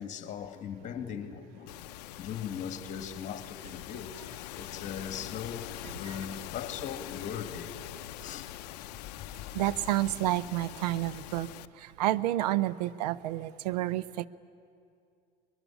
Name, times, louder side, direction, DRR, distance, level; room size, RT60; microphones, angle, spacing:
voice 1, 0.0-1.8 2.2-7.7 8.2-8.5, left 7 dB, 40° left, 2.1 m, -39 dB
sound 1, 1.7-11.7, left 17 dB, 80° left, 0.6 m, -43 dB
voice 2, 9.5-11.5 11.8-14.3, right 15 dB, 85° right, 0.7 m, -29 dB
22.5 x 22.0 x 10.0 m
supercardioid pair, 110°, 20 cm